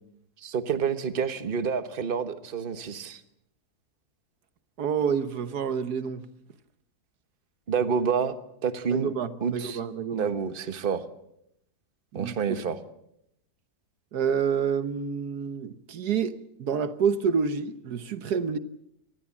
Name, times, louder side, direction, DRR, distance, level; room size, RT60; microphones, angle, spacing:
voice 1, 0.4-3.2 7.7-8.3 8.6-9.1 9.4-9.8 10.1-11.0 12.1-12.8, right 6 dB, 35° right, 1.3 m, -28 dB
voice 2, 4.8-6.2 8.9-10.3 12.1-12.3 12.7-12.8 14.1-18.6, right 6 dB, 75° right, 1.6 m, -28 dB
26.0 x 19.5 x 7.3 m
omnidirectional pair, 1.7 m